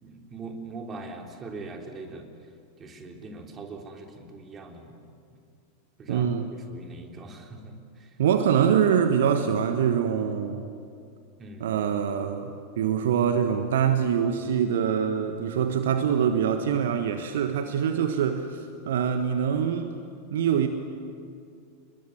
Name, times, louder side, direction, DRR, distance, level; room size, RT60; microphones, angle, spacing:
voice 1, 0.0-2.2 2.8-4.9 6.0-8.2 11.4-11.7, right 3 dB, 25° right, 3 dB, 3.5 m, -41 dB
voice 2, 6.1-6.4 8.2-10.8 11.6-19.9 20.3-20.7, right 8 dB, 60° right, 8 dB, 1.4 m, -24 dB
28.5 x 21.5 x 9.6 m, 2.4 s
figure-of-eight pair, 90°, 0 cm